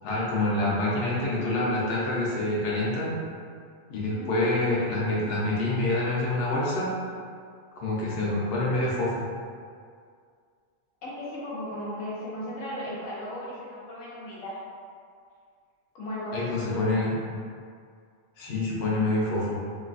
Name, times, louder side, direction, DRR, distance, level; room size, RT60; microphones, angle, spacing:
voice 1, 0.0-3.1 3.9-6.9 7.7-9.2 16.3-17.2 18.4-19.6, left 2 dB, 60° left, -6 dB, 0.8 m, -26 dB
voice 2, 11.0-14.5 15.9-17.0, left 1 dB, 85° left, -7 dB, 1.2 m, -36 dB
3.1 x 2.3 x 2.4 m, 2.1 s
omnidirectional pair, 1.3 m